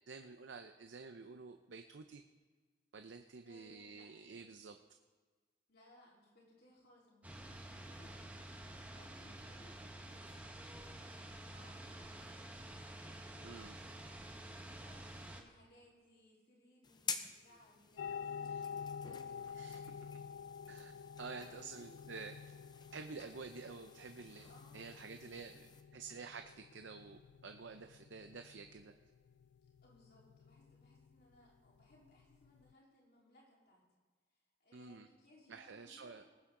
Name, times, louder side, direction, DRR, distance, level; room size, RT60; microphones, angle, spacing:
voice 1, 0.1-2.2 2.9-4.8 13.4-13.8 18.5-18.6 19.5-19.8 20.7-20.9 21.2-22.4 22.9-24.5 24.7-28.9 34.7-35.1 35.5-36.3, right 4 dB, 80° right, 7 dB, 0.6 m, -50 dB
voice 2, 3.4-4.1 5.7-12.7 13.3-14.1 14.5-20.3 21.3-22.0 24.5-25.5 29.6-33.8 34.3-36.3, left 1 dB, 55° left, -4 dB, 3.8 m, -66 dB
sound 1, 7.2-15.4, right 1 dB, 10° right, 1.0 m, -50 dB
sound 2, 16.8-25.8, left 6 dB, 25° left, 0.6 m, -50 dB
sound 3, 18.0-32.7, left 7 dB, 70° left, 0.3 m, -50 dB
19.5 x 8.7 x 3.8 m, 1.4 s
head